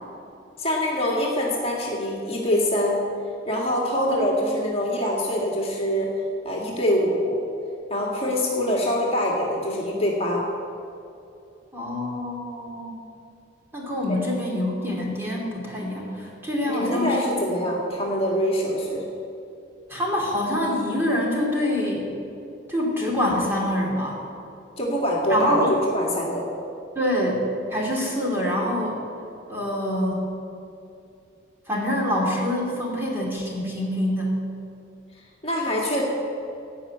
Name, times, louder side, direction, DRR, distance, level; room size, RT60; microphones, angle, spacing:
voice 1, 0.6-3.0 3.5-6.1 6.4-7.4 7.9-10.4 14.1-14.2 16.7-19.0 24.8-26.5 35.4-36.0, equal, 30° left, -3 dB, 2.0 m, -24 dB
voice 2, 3.9-4.5 11.7-12.9 13.7-17.4 19.9-22.0 22.7-24.2 25.3-25.6 26.9-27.4 27.7-29.0 29.5-30.3 31.7-34.4, left 1 dB, 10° right, -3 dB, 2.7 m, -25 dB
16.5 x 5.7 x 8.8 m, 2.6 s
head